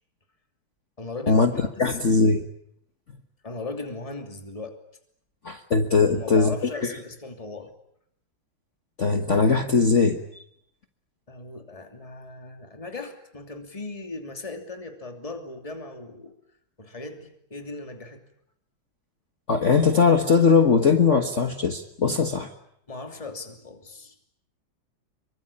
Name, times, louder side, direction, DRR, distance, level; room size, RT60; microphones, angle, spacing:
voice 1, 1.0-1.6 1.9-2.0 3.4-4.8 6.0-7.7 11.3-16.3 16.8-18.2 22.9-24.1, left 3 dB, 15° left, 5 dB, 2.9 m, -37 dB
voice 2, 1.8-2.4 5.4-6.5 6.8-6.9 9.0-10.4 19.5-22.5, left 5 dB, 40° left, 6 dB, 1.5 m, -20 dB
25.5 x 24.5 x 8.7 m, 0.70 s
omnidirectional pair, 2.2 m